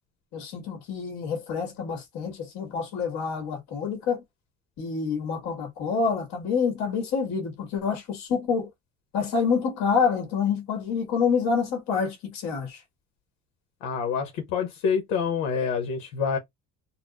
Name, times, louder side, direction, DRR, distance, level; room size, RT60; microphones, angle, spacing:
voice 1, 0.3-4.2 4.8-8.7 9.1-12.8, left 5 dB, 60° left, 1.7 m, -27 dB
voice 2, 13.8-16.4, left 6 dB, 90° left, 0.9 m, -27 dB
4.1 x 2.0 x 2.4 m
cardioid pair, 145°, 31 cm